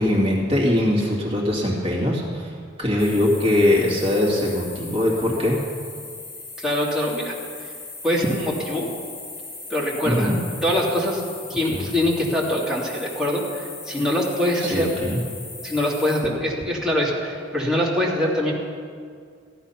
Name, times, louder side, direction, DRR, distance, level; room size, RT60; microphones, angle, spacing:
voice 1, 0.0-2.5 2.8-5.6 10.0-10.4 11.6-11.8 14.6-15.2, left 1 dB, 30° right, -3 dB, 2.3 m, -21 dB
sound 1, 3.0-16.2, left 3 dB, 70° left, 3.9 m, -38 dB
voice 2, 6.6-7.3 8.0-8.9 9.7-10.3 10.6-11.2 11.5-14.9 15.6-18.5, left 1 dB, 5° right, -5 dB, 2.4 m, -23 dB
14.5 x 11.0 x 5.8 m, 2.1 s
head